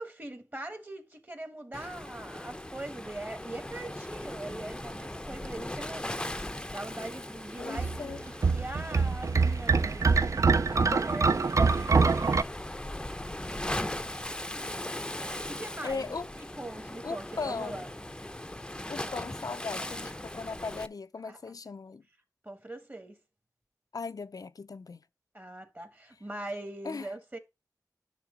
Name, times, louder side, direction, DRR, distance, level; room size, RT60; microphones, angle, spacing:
voice 1, 0.0-11.3 15.1-16.0 16.6-17.9 19.0-19.2 21.2-21.4 22.4-23.2 25.3-27.4, right 1 dB, 30° right, 1.4 m, -42 dB
Waves surf, 1.7-20.9, left 1 dB, 10° left, 0.5 m, -39 dB
voice 2, 7.6-8.2 10.7-11.0 12.1-12.2 15.8-16.3 17.0-17.8 18.9-22.0 23.9-25.0 26.8-27.1, left 4 dB, 65° left, 0.4 m, -38 dB
sound 1, 7.8-12.4, right 4 dB, 50° right, 0.4 m, -24 dB
9.7 x 3.5 x 5.0 m
wide cardioid pair, 70°, 7 cm